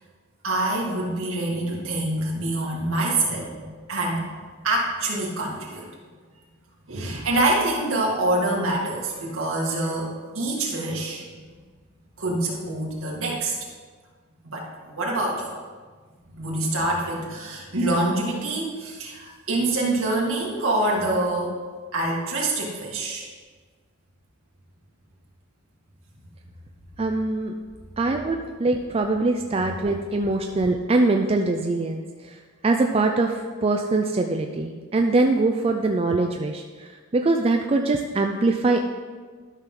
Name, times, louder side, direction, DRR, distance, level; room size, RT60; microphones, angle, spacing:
voice 1, 0.4-5.9 6.9-11.2 12.2-13.5 14.4-15.5 16.3-21.6 21.9-23.3, right 2 dB, 65° right, -2 dB, 2.0 m, -26 dB
voice 2, 27.0-27.5 28.0-32.4 32.6-38.9, right 2 dB, 25° right, 3 dB, 0.4 m, -23 dB
12.0 x 6.0 x 3.7 m, 1.5 s
head